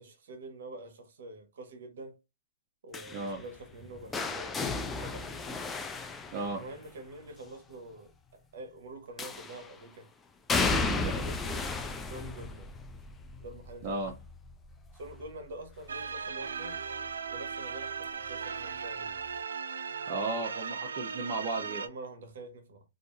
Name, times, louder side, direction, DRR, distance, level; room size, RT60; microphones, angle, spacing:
voice 1, 0.0-2.2 2.8-5.4 6.5-10.1 11.0-11.7 12.0-12.7 13.4-14.0 14.9-16.8 17.3-19.2 21.8-22.8, right 2 dB, 65° right, 0.9 m, -46 dB
sound 1, 2.9-7.0 9.2-9.8 10.5-16.3 16.7-17.1 18.3-18.4, left 4 dB, 10° left, 0.3 m, -35 dB
sound 2, 15.9-21.9, right 6 dB, 90° right, 0.3 m, -37 dB
voice 2, 20.1-21.8, right 3 dB, 40° right, 0.6 m, -34 dB
2.6 x 2.4 x 2.3 m
hypercardioid pair, 145°, 0 cm